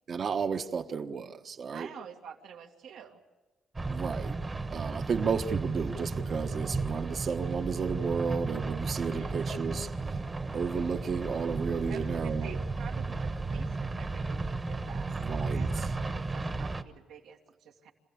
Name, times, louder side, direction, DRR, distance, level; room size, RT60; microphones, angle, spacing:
voice 1, 0.1-1.9 3.9-4.3 4.7-9.9 10.5-12.6 15.1-15.8, right 5 dB, 50° right, 8 dB, 1.3 m, -32 dB
voice 2, 1.7-3.2 9.1-9.4 11.9-17.9, right 7 dB, 85° right, 1 dB, 2.3 m, -48 dB
sound 1, 3.7-16.8, right 3 dB, 25° right, 1.3 m, -34 dB
27.0 x 15.5 x 8.6 m, 1.2 s
cardioid pair, 90°, 0 cm